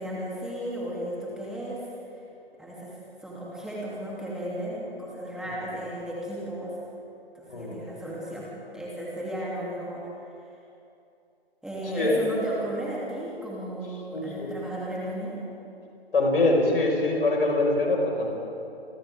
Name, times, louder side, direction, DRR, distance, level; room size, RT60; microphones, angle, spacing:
voice 1, 0.0-1.9 2.6-6.8 7.3-10.1 11.6-15.4, equal, ahead, -6 dB, 3.2 m, -34 dB
voice 2, 7.5-7.8 12.0-12.2 14.1-14.5 16.1-18.3, left 2 dB, 60° left, 0 dB, 5.8 m, -23 dB
29.0 x 24.5 x 3.8 m, 2.7 s
figure-of-eight pair, 130°, 32 cm